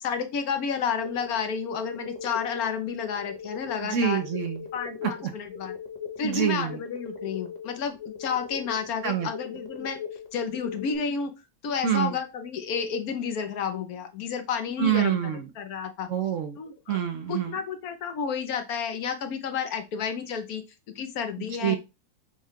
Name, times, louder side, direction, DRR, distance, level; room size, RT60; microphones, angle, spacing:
voice 1, 0.0-4.2 4.7-5.8 6.2-10.0 10.3-11.3 11.6-15.2 15.6-16.1 16.6-17.0 17.3-20.6 20.9-21.8, left 6 dB, 70° left, 7 dB, 1.2 m, -31 dB
sound 1, 1.0-11.0, left 6 dB, 40° left, 0.6 m, -39 dB
voice 2, 3.8-4.6 5.0-5.3 6.2-6.8 9.0-9.3 11.8-12.1 14.8-15.5 16.1-16.6 16.9-17.6 21.6-21.8, right 9 dB, 65° right, 6 dB, 0.9 m, -26 dB
6.3 x 2.3 x 3.6 m, 0.26 s
omnidirectional pair, 1.7 m